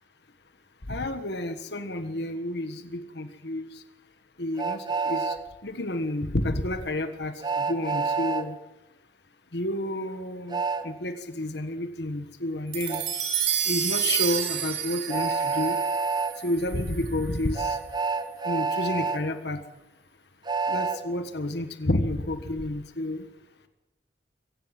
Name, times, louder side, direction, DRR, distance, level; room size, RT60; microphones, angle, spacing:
voice 1, 0.9-3.7 4.4-5.3 5.6-8.5 9.5-13.0 13.6-15.8 16.4-17.8 18.4-19.6 20.7-23.2, left 1 dB, 65° left, 8 dB, 1.5 m, -30 dB
Train, 4.6-5.4 7.4-8.5 10.5-10.8 12.9-13.0 15.1-16.3 17.5-19.2 20.5-21.0, right 4 dB, 25° right, 1.2 m, -27 dB
sound 1, 12.7-17.3, right 9 dB, 75° right, 4.4 m, -29 dB
24.0 x 15.5 x 7.7 m, 0.96 s
head